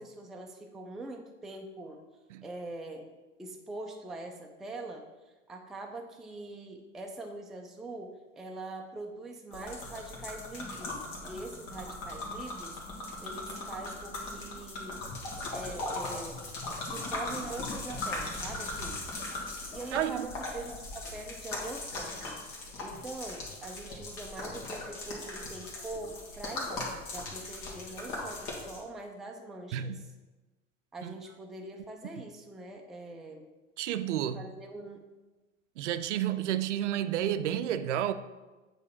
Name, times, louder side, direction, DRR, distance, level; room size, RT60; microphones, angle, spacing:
voice 1, 0.0-2.0 2.4-3.1 3.4-5.1 5.5-12.8 13.2-15.0 15.5-16.5 16.8-19.1 19.7-22.4 22.8-30.1 30.9-33.5 34.3-35.1, right 2 dB, ahead, 0.3 m, -43 dB
sound 1, 9.5-28.8, left 2 dB, 50° left, 1.8 m, -39 dB
voice 2, 19.9-20.3 29.7-30.0 31.0-31.1 33.8-34.4 35.8-38.1, right 11 dB, 65° right, 0.5 m, -30 dB
8.1 x 3.2 x 4.3 m
figure-of-eight pair, 85°, 38 cm